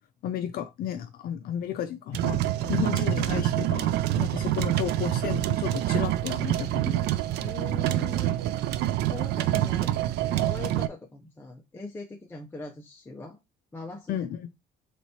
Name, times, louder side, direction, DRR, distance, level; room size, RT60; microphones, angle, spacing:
voice 1, 0.2-2.4 2.7-7.0 14.1-14.5, left 10 dB, 60° left, 0.5 m, -33 dB
sound 1, 2.1-10.9, right 13 dB, 80° right, 0.4 m, -26 dB
voice 2, 7.4-8.4 9.1-9.9 10.3-13.4 13.7-14.3, left 3 dB, 15° left, 0.6 m, -41 dB
3.3 x 3.0 x 4.2 m
cardioid pair, 110°, 17 cm